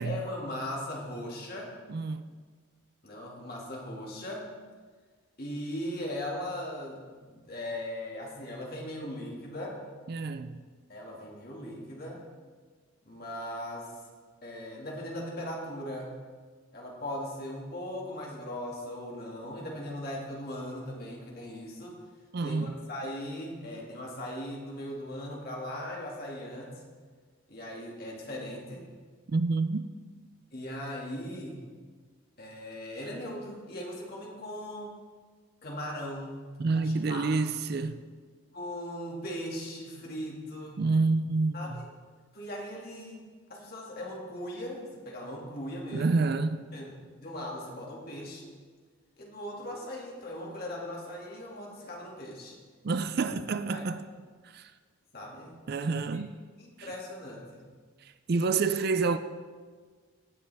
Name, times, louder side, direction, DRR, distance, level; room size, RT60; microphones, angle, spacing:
voice 1, 0.0-1.7 3.0-4.5 5.4-9.8 10.9-12.2 13.0-13.9 14.4-16.1 16.7-22.0 22.4-26.8 27.5-28.9 30.5-31.6 32.4-35.0 35.6-36.4 36.7-37.3 38.5-40.8 41.5-41.8 42.3-43.2 43.5-46.1 46.7-46.9 47.2-48.5 49.2-52.6 53.7-53.8 55.1-55.6 56.1-56.2 56.6-57.7, left 1 dB, 45° left, 2.1 m, -39 dB
voice 2, 1.9-2.2 10.1-10.6 22.3-22.7 29.3-29.8 36.6-38.0 40.8-41.8 45.9-46.6 52.8-54.0 54.5-54.7 55.7-56.3 56.8-56.9 58.3-59.2, right 3 dB, 50° right, 0.4 m, -28 dB
18.0 x 6.8 x 3.5 m
head